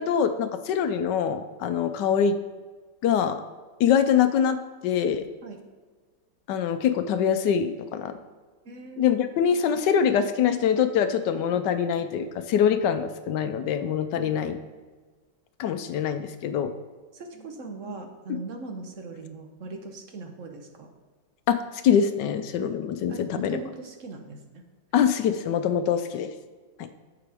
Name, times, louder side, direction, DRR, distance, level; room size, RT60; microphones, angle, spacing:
voice 1, 0.0-2.4 3.0-3.4 3.8-4.6 4.8-5.2 6.5-8.1 9.0-14.6 15.6-16.7 21.5-21.6 21.8-23.6 24.9-26.3, left 8 dB, 75° left, 9 dB, 1.2 m, -24 dB
voice 2, 8.6-9.3 14.2-14.6 17.1-20.9 23.1-24.4, right 3 dB, 50° right, 4 dB, 1.2 m, -40 dB
10.5 x 7.7 x 3.5 m, 1.4 s
omnidirectional pair, 2.0 m